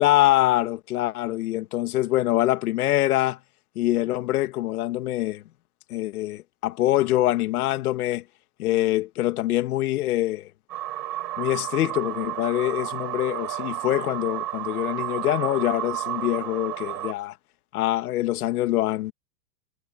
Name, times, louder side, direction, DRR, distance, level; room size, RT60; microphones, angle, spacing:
voice 1, 0.0-3.4 3.8-5.4 5.9-8.2 8.6-10.5 11.4-17.3 17.7-19.1, left 15 dB, 65° left, 2.0 m, -24 dB
sound 1, 10.7-17.1, right 13 dB, 80° right, 5.3 m, -32 dB
supercardioid pair, 160°, 49 cm